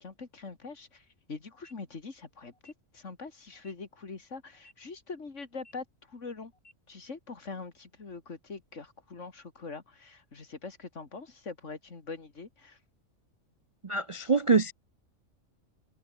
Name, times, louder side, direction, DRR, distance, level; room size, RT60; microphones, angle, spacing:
voice 1, 0.0-6.5 6.9-12.8, left 4 dB, 65° left, 2.7 m, -43 dB
sound 1, 1.5-1.7 2.5-2.7 3.5-3.7 4.5-4.7 5.5-5.7 6.5-6.7, left 1 dB, 50° left, 8.4 m, -58 dB
voice 2, 13.8-14.7, right 4 dB, 35° right, 0.5 m, -25 dB
open air
omnidirectional pair, 1.4 m